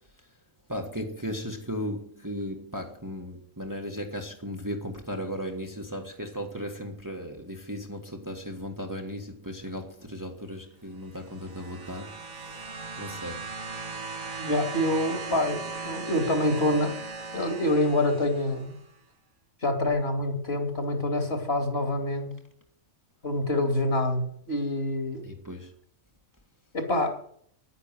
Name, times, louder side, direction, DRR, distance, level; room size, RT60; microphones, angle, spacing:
voice 1, 0.7-13.4 25.2-25.7, equal, 15° right, 1.5 m, -36 dB
sound 1, 11.1-18.8 19.9-20.0, right 4 dB, 60° right, 2.1 m, -38 dB
voice 2, 14.4-17.0 17.3-18.7 19.6-22.4 23.2-25.3 26.7-27.2, left 1 dB, 45° left, 2.9 m, -26 dB
10.5 x 10.0 x 9.0 m
omnidirectional pair, 1.4 m